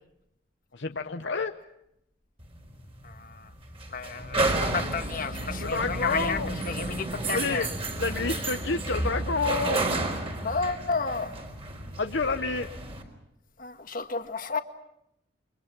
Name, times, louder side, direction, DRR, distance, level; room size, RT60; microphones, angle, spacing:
voice 1, 0.7-1.5 5.6-6.5 7.3-7.7 8.0-9.8 12.0-12.7, left 4 dB, 65° left, 0.9 m, -29 dB
sound 1, 2.4-13.0, right 2 dB, 30° right, 4.3 m, -31 dB
voice 2, 3.0-3.5 3.9-7.7 10.4-11.3 13.6-14.6, left 4 dB, 45° left, 1.6 m, -32 dB
29.5 x 24.5 x 6.1 m
head